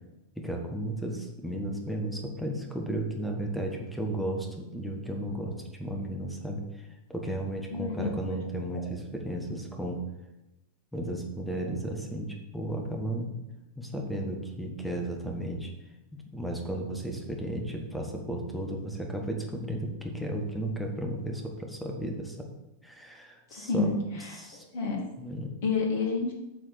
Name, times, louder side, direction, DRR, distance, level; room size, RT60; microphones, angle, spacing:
voice 1, 0.4-10.0 10.9-13.3 13.8-15.7 16.3-22.4 22.8-23.9 24.3-24.6 25.2-25.5, right 1 dB, ahead, 1 dB, 1.4 m, -34 dB
voice 2, 7.7-8.4 8.7-8.9 23.5-25.0 25.6-26.3, left 4 dB, 55° left, 0 dB, 2.1 m, -30 dB
7.4 x 4.1 x 6.6 m, 0.96 s
figure-of-eight pair, 90°, 0 cm